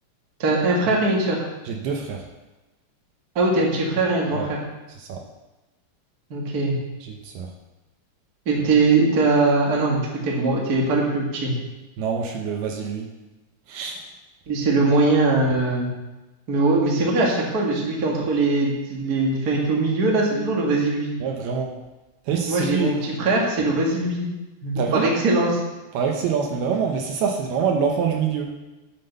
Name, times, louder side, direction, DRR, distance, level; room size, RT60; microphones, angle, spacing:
voice 1, 0.4-1.4 3.3-4.6 6.3-6.8 8.4-11.5 14.5-15.9 16.5-21.1 22.5-24.2 24.6-25.6, right 2 dB, 40° right, -2 dB, 1.4 m, -21 dB
voice 2, 1.6-2.3 4.3-4.5 4.9-5.2 7.0-7.5 12.0-13.1 13.7-14.1 21.2-21.7 22.3-22.9 24.8-25.1 25.9-28.5, right 6 dB, 75° right, 2 dB, 2.6 m, -25 dB
9.2 x 7.6 x 6.8 m, 1.1 s
omnidirectional pair, 5.0 m